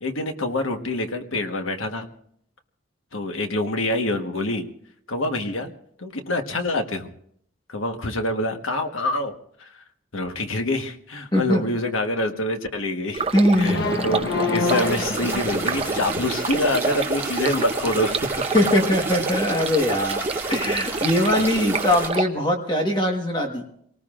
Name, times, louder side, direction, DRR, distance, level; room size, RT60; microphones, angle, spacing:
voice 1, 0.0-2.1 3.1-4.7 5.1-5.7 6.0-7.1 7.7-9.3 9.6-9.7 10.1-18.4 21.4-21.6, left 1 dB, 90° left, 5 dB, 1.4 m, -26 dB
voice 2, 11.3-11.6 13.3-13.8 18.5-23.6, left 1 dB, 25° left, 2 dB, 1.4 m, -21 dB
Stream, 13.1-22.2, right 3 dB, 30° right, 0.7 m, -28 dB
sound 1, 13.6-16.6, left 3 dB, 55° left, 1.2 m, -27 dB
sound 2, 14.6-22.1, right 4 dB, 10° right, 2.0 m, -32 dB
28.5 x 19.0 x 2.5 m, 0.67 s
head